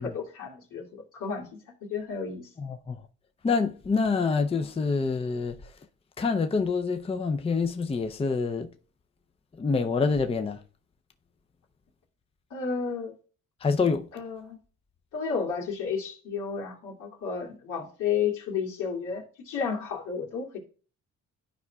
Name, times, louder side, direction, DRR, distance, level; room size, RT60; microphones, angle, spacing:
voice 1, 0.0-1.5 1.9-2.5 12.5-13.2 14.1-14.6 15.1-20.6, left 6 dB, 85° left, 2.3 m, -32 dB
voice 2, 2.6-3.1 3.4-5.7 6.2-8.7 9.6-10.6 13.6-14.1, left 4 dB, 20° left, 0.5 m, -26 dB
12.5 x 4.7 x 2.3 m
cardioid pair, 90°, 30 cm